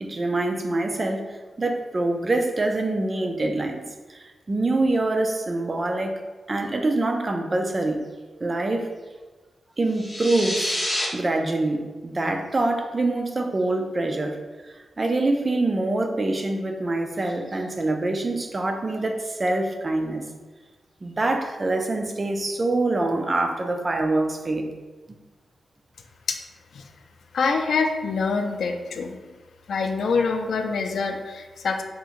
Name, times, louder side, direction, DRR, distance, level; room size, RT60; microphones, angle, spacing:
voice 1, 0.0-1.3 1.6-3.8 4.1-6.1 6.5-8.1 8.4-8.9 9.8-10.8 11.1-20.3 21.0-24.7, right 2 dB, 30° right, 4 dB, 0.3 m, -25 dB
sound 1, 9.9-11.1, left 1 dB, 15° left, 0.7 m, -27 dB
voice 2, 27.3-29.2 29.7-31.8, left 4 dB, 80° left, 5 dB, 0.3 m, -25 dB
2.8 x 2.5 x 3.7 m, 1.3 s
wide cardioid pair, 135°, 0 cm